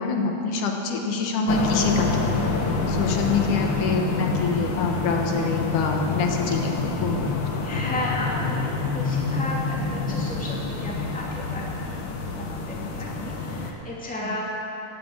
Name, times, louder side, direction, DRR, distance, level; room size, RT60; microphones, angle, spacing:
voice 1, 0.0-2.3 2.9-6.7 7.0-7.5 12.8-12.9 14.2-14.3, left 4 dB, 80° left, 2 dB, 2.8 m, -26 dB
sound 1, 1.5-13.7, left 3 dB, 50° left, 1.6 m, -27 dB
voice 2, 7.6-14.4, left 1 dB, 5° left, -4 dB, 2.2 m, -34 dB
16.0 x 9.5 x 9.0 m, 2.9 s
omnidirectional pair, 3.6 m